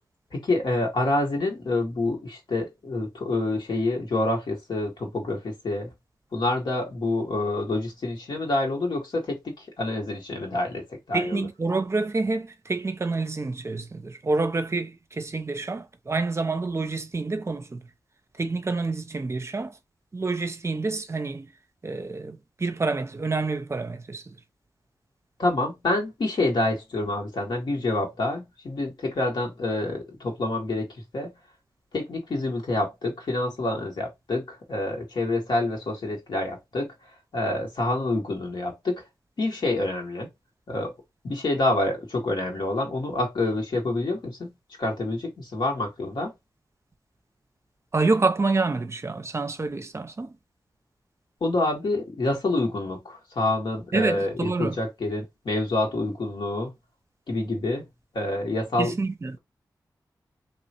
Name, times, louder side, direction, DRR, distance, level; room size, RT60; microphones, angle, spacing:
voice 1, 0.3-5.9 6.3-11.4 25.4-30.9 31.1-31.3 31.9-36.9 37.3-39.0 39.4-40.3 40.7-40.9 41.2-44.5 44.8-46.3 51.4-56.7 57.3-57.9 58.1-58.9, left 2 dB, 75° left, 1.6 m, -27 dB
voice 2, 11.1-17.8 18.4-19.7 20.1-21.5 21.8-24.3 47.9-50.3 53.9-54.8 58.8-59.4, right 3 dB, 35° right, 0.5 m, -27 dB
3.1 x 2.9 x 2.9 m
wide cardioid pair, 70°, 8 cm